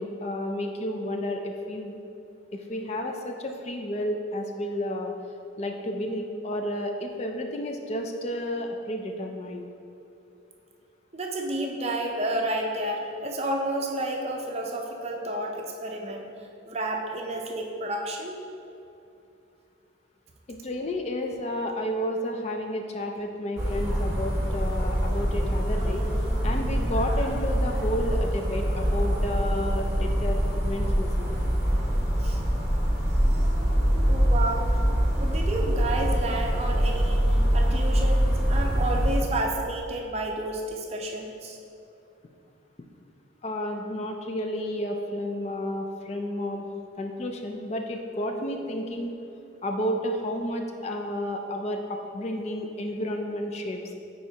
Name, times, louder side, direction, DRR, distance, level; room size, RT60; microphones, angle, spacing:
voice 1, 0.0-2.0 2.5-5.1 5.6-9.6 20.5-26.1 26.4-31.3 43.4-46.7 47.0-49.1 49.6-53.9, left 1 dB, 35° left, 3 dB, 0.3 m, -31 dB
voice 2, 11.1-16.3 16.7-18.4 32.2-32.4 34.1-34.7 35.1-37.2 37.5-41.6, right 1 dB, 30° right, 1 dB, 0.5 m, -31 dB
sound 1, 23.6-39.2, equal, 15° right, 1.0 m, -24 dB
9.3 x 4.3 x 2.8 m, 2.7 s
head